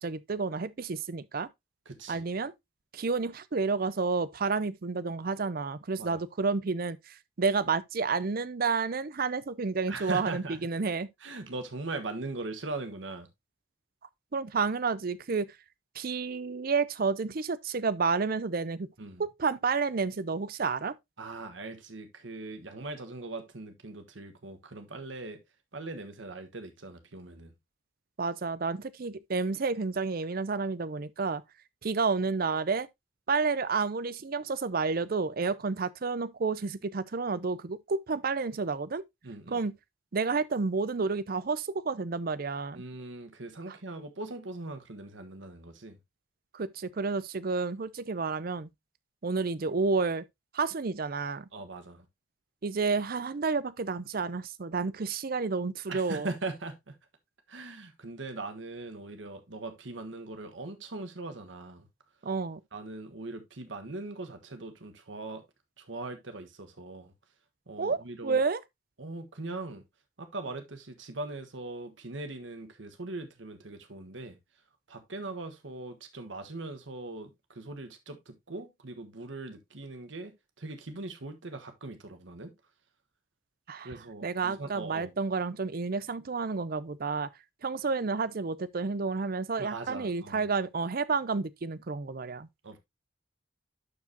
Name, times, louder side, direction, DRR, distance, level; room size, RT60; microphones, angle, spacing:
voice 1, 0.0-1.5 2.1-2.5 2.9-11.1 14.3-15.5 16.0-18.9 19.2-20.9 28.2-31.4 31.8-32.9 33.3-39.0 39.5-39.7 40.1-42.8 46.5-48.7 49.2-50.2 50.5-51.5 52.6-56.3 62.2-62.6 67.8-68.6 83.7-83.9 84.2-87.3 87.6-92.5, right 4 dB, 50° right, 0.5 m, -30 dB
voice 2, 1.8-2.3 6.0-6.2 9.9-10.6 11.2-13.3 19.0-19.2 21.2-25.4 25.7-27.5 39.2-39.6 42.7-46.0 51.5-52.0 55.9-57.0 57.5-61.9 62.7-65.4 65.8-67.1 67.7-68.4 69.0-69.8 70.2-74.4 74.9-82.5 83.8-85.1 89.6-90.5 92.6-92.8, right 2 dB, 70° right, 1.4 m, -40 dB
11.5 x 4.7 x 2.8 m
head